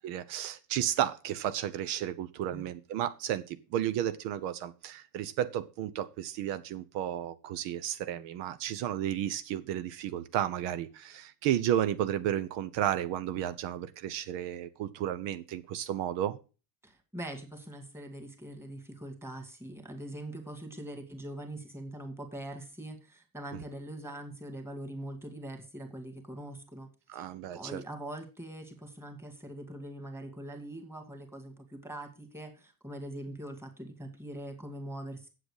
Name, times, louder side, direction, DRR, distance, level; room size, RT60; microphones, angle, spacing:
voice 1, 0.0-16.4 27.1-27.8, right 11 dB, 75° right, 0.9 m, -33 dB
voice 2, 16.8-35.3, right 1 dB, 5° right, 2.1 m, -43 dB
7.9 x 7.9 x 4.8 m
cardioid pair, 140°, 43 cm